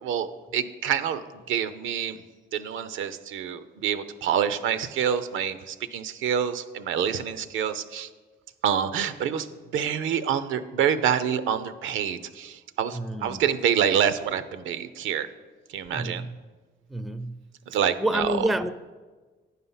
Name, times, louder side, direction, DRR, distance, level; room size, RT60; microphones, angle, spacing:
voice 1, 0.0-2.2 2.5-8.1 8.6-9.5 9.7-15.3 15.7-16.3 17.7-18.3, right 8 dB, 80° right, 0.6 m, -27 dB
voice 2, 12.9-13.4 15.9-16.4 16.9-17.4 18.0-18.7, right 1 dB, ahead, 0.4 m, -28 dB
9.4 x 5.7 x 5.5 m
cardioid pair, 90°, 20 cm